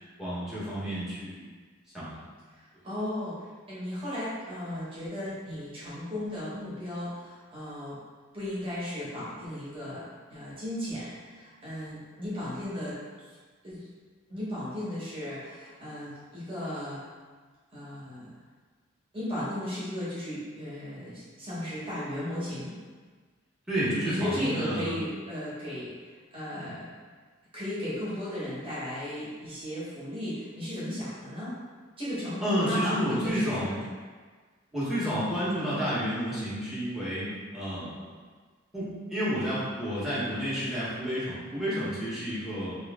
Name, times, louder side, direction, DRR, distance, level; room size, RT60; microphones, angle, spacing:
voice 1, 0.2-1.4 1.9-2.2 23.7-25.0 26.5-26.7 32.4-33.7 34.7-38.1 38.7-42.8, equal, ahead, -10 dB, 1.0 m, -30 dB
voice 2, 2.5-3.4 3.7-8.0 8.3-10.0 10.3-13.0 13.6-13.9 14.3-17.1 17.7-18.3 19.1-22.8 24.0-25.9 26.3-26.9 27.5-31.5 32.0-33.9, left 1 dB, 25° right, -10 dB, 1.2 m, -35 dB
3.0 x 3.0 x 3.5 m, 1.5 s
head